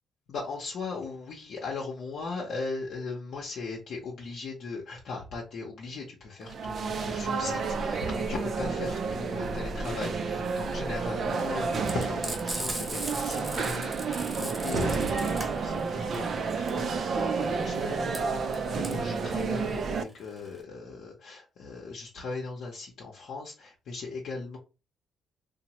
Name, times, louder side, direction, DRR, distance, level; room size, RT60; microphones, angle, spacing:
voice 1, 0.3-24.6, left 3 dB, 70° left, -2 dB, 0.7 m, -38 dB
sound 1, 6.4-20.0, right 4 dB, 55° right, 0.3 m, -30 dB
Frying (food), 11.8-20.6, right 1 dB, 15° right, 1.1 m, -38 dB
2.9 x 2.0 x 2.9 m, 0.30 s
cardioid pair, 90°, 0 cm